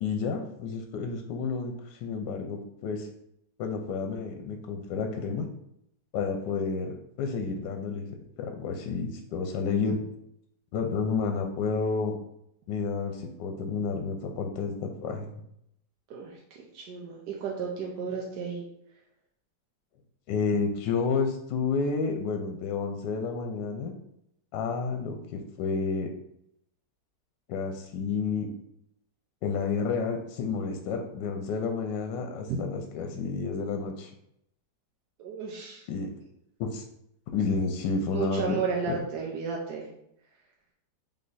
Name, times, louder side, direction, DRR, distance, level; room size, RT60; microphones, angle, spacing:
voice 1, 0.0-3.1 3.6-5.5 6.1-8.1 8.4-10.0 10.7-12.2 12.7-15.4 20.3-23.9 24.5-26.1 27.5-28.5 29.4-34.1 35.9-36.1 36.6-36.8 37.3-38.6 38.9-39.0, left 5 dB, 85° left, 4 dB, 1.2 m, -30 dB
voice 2, 16.1-18.7 32.5-32.6 35.2-35.9 38.1-39.9, right 5 dB, 70° right, -2 dB, 1.2 m, -33 dB
3.5 x 3.3 x 4.0 m, 0.75 s
omnidirectional pair, 1.9 m